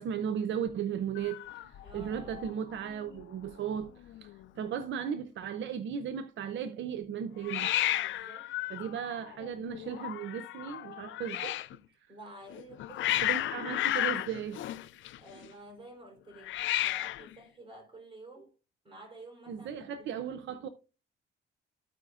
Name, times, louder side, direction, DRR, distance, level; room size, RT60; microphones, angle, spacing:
voice 1, 0.0-3.9 4.2-4.3 4.6-7.7 8.7-11.6 13.2-14.6 19.5-20.7, right 8 dB, 70° right, 0.6 m, -36 dB
Hiss, 1.2-2.5 2.8-3.2 3.5-3.6 3.8-4.5 7.4-11.8 12.5-15.5 16.4-17.3, left 14 dB, 75° left, 0.5 m, -33 dB
voice 2, 1.8-2.5 7.9-8.5 12.1-13.7 15.2-18.5 18.8-20.2, right 1 dB, 25° right, 3.5 m, -51 dB
14.0 x 4.9 x 2.4 m
cardioid pair, 90°, 20 cm